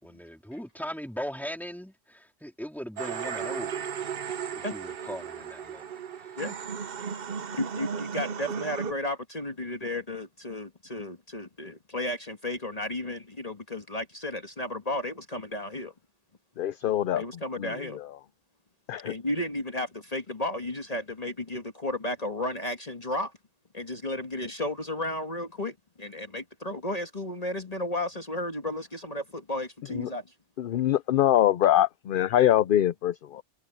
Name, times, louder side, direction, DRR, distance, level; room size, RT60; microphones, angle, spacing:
voice 1, 0.0-3.9 4.5-5.9, equal, ahead, 3.5 m, -39 dB
sound 1, 3.0-8.9, right 7 dB, 60° right, 1.0 m, -35 dB
voice 2, 7.5-15.9 17.1-18.0 19.0-23.3 23.7-30.3, left 1 dB, 35° left, 1.8 m, -33 dB
voice 3, 16.6-17.2 18.9-19.1 30.0-30.1 30.6-33.4, left 12 dB, 60° left, 0.7 m, -23 dB
omnidirectional pair, 1.1 m